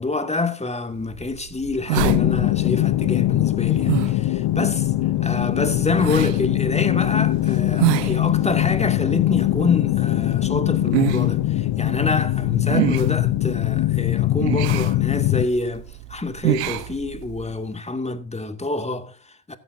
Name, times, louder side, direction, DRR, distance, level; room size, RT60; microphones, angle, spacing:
voice 1, 0.0-4.9 5.2-19.6, left 3 dB, 15° left, 2.4 m, -27 dB
sound 1, 1.0-17.6, right 16 dB, 85° right, 1.1 m, -29 dB
sound 2, 2.0-15.5, left 16 dB, 60° left, 0.9 m, -21 dB
16.5 x 13.5 x 2.7 m
hypercardioid pair, 65°, 48 cm